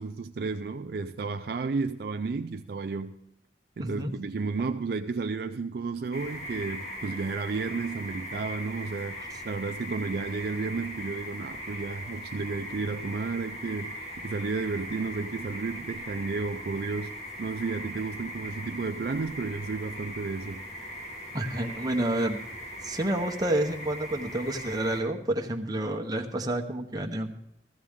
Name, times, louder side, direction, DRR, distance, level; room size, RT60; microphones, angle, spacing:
voice 1, 0.0-3.2 3.8-20.6, right 4 dB, 60° right, 0.4 m, -32 dB
voice 2, 3.8-4.1 21.3-22.4 22.8-27.3, right 1 dB, 20° right, 0.9 m, -29 dB
sound 1, 6.1-25.0, equal, 60° left, 3.8 m, -40 dB
14.5 x 14.5 x 3.6 m
head